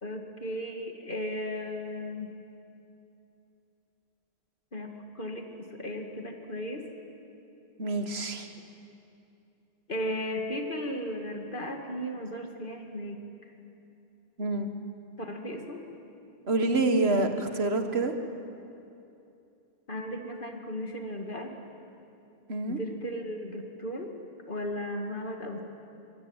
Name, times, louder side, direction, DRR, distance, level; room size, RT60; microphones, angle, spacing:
voice 1, 0.0-2.3 4.7-6.9 9.9-13.2 15.2-15.8 19.9-21.5 22.7-24.1 24.5-25.6, left 1 dB, 55° left, 3 dB, 2.6 m, -35 dB
voice 2, 7.8-8.5 14.4-14.7 16.5-18.1 22.5-22.8, right 2 dB, 75° right, 6 dB, 1.9 m, -27 dB
25.0 x 24.5 x 9.0 m, 2.8 s
omnidirectional pair, 1.1 m